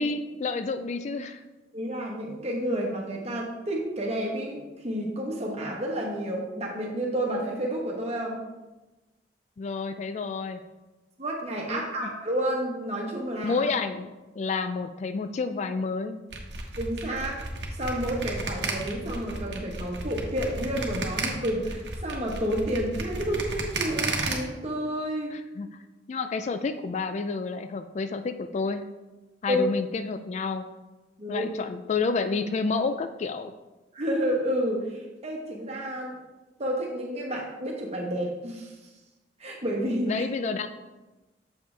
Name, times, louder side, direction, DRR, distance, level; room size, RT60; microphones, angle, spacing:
voice 1, 0.0-1.4 9.6-10.6 11.7-11.9 13.4-14.1 14.4-16.2 25.3-25.8 26.1-28.9 29.4-30.7 31.3-33.5 40.1-40.7, left 4 dB, 40° left, 9 dB, 0.3 m, -29 dB
voice 2, 1.7-8.4 11.2-13.7 16.8-17.4 17.7-25.3 29.5-29.7 31.2-31.5 33.9-36.2 36.6-38.8 39.4-40.2, equal, 35° right, -1 dB, 1.3 m, -30 dB
sound 1, 16.3-24.3, right 3 dB, 70° right, 1.0 m, -32 dB
7.2 x 5.1 x 3.3 m, 1.1 s
head